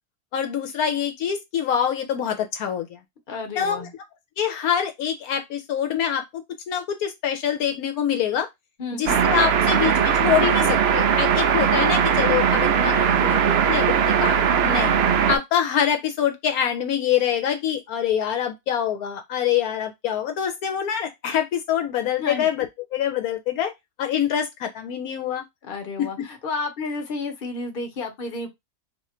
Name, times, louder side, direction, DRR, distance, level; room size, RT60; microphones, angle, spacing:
voice 1, 0.3-3.0 3.6-3.9 4.4-8.5 9.0-12.9 13.2-14.9 15.3-22.7 22.9-23.7 24.0-25.4, left 9 dB, 75° left, 1.0 m, -25 dB
voice 2, 3.3-3.9 8.8-9.2 12.9-13.3 22.2-22.5 25.6-28.5, left 3 dB, 45° left, 0.9 m, -31 dB
sound 1, 9.1-15.4, right 7 dB, 85° right, 0.5 m, -19 dB
2.8 x 2.4 x 4.2 m
omnidirectional pair, 1.6 m